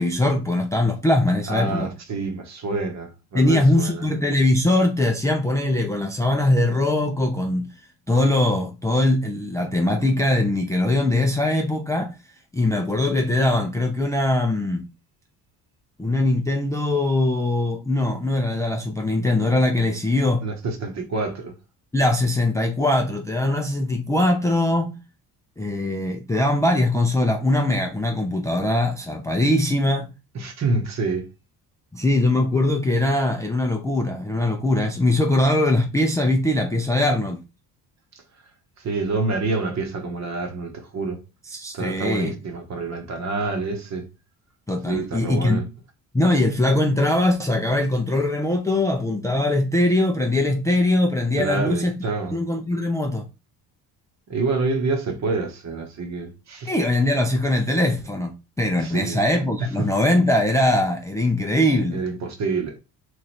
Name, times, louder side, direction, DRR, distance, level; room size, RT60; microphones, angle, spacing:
voice 1, 0.0-1.9 3.3-7.7 8.1-12.2 12.5-14.9 16.0-20.4 21.9-25.0 25.6-30.1 31.9-37.4 41.5-42.3 44.7-45.6 46.1-51.9 52.3-53.3 56.7-62.0, left 1 dB, 10° left, 0.4 m, -21 dB
voice 2, 1.5-4.1 20.4-21.5 30.3-31.3 38.8-41.2 41.7-44.1 44.9-45.6 51.4-52.4 54.3-56.7 58.8-59.2 59.8-59.9 61.9-62.8, right 3 dB, 45° right, 1.0 m, -27 dB
3.1 x 2.4 x 4.2 m
cardioid pair, 115°, 39 cm